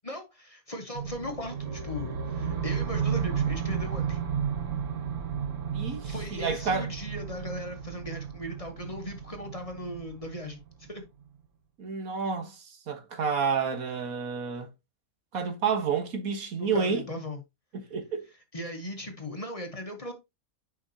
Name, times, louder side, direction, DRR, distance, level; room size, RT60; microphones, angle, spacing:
voice 1, 0.0-4.2 6.0-10.6 10.9-11.0 16.6-17.4 18.5-20.1, left 1 dB, 25° left, 1.3 m, -38 dB
sound 1, 0.9-11.0, right 7 dB, 60° right, 1.4 m, -33 dB
voice 2, 5.7-6.9 11.8-14.7 15.3-17.1 17.7-18.3, right 5 dB, 80° right, 1.7 m, -30 dB
9.8 x 5.2 x 2.7 m
omnidirectional pair, 1.5 m